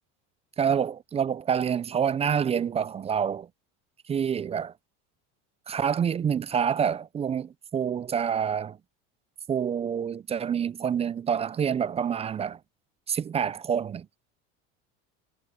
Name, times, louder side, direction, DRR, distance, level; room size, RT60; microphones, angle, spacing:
voice 1, 0.6-3.5 4.1-4.7 5.7-8.8 9.5-12.6 13.1-14.1, right 7 dB, 20° right, 0.3 m, -27 dB
supercardioid pair, 105°, 35 cm